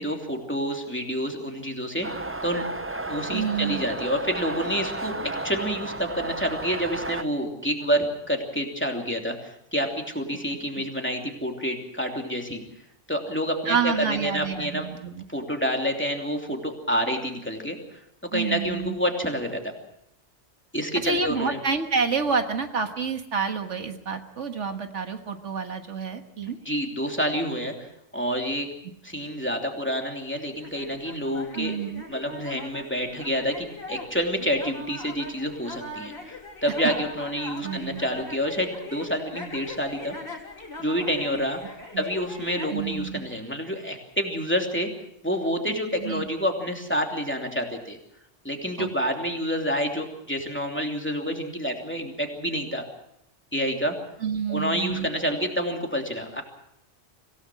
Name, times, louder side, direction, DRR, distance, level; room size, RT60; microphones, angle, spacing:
voice 1, 0.0-2.1 2.4-2.6 3.1-5.1 5.4-12.6 13.1-14.9 15.3-18.0 18.3-19.7 20.7-21.6 26.6-28.7 29.0-31.8 32.1-40.2 40.8-44.9 45.2-48.0 48.4-52.8 53.5-54.0 54.5-56.4, equal, 10° left, 2 dB, 2.9 m, -28 dB
sound 1, 2.0-7.2, right 2 dB, 15° right, 0.5 m, -33 dB
voice 2, 3.3-3.8 13.7-15.2 18.3-19.0 21.0-26.6 31.6-32.0 37.6-38.0 41.9-42.0 42.7-43.2 46.0-46.3 48.8-48.9 54.2-55.1, right 6 dB, 80° right, 6 dB, 1.9 m, -28 dB
sound 2, 30.6-42.7, left 2 dB, 50° left, 3.5 m, -40 dB
25.5 x 17.0 x 6.2 m, 0.77 s
omnidirectional pair, 1.2 m